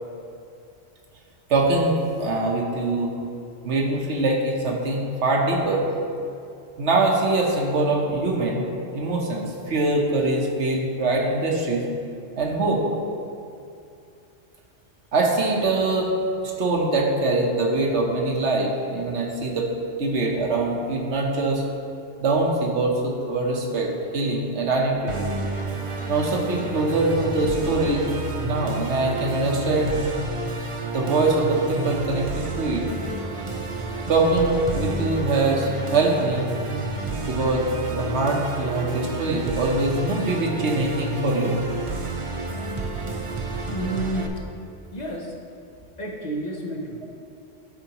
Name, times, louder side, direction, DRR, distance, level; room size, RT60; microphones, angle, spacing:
voice 1, 1.5-3.2 3.6-5.9 6.8-11.9 12.4-12.9 15.1-16.1 16.4-19.7 20.0-21.6 22.2-25.3 26.1-30.1 30.9-32.9 34.1-36.5 37.2-41.6, right 2 dB, 70° right, 0 dB, 1.2 m, -23 dB
Musical instrument, 25.1-44.3, right 3 dB, 45° right, 0.4 m, -30 dB
voice 2, 43.7-44.3 44.9-45.3 46.0-47.1, right 1 dB, 40° left, -2 dB, 0.8 m, -30 dB
11.5 x 5.0 x 2.9 m, 2.5 s
omnidirectional pair, 1.2 m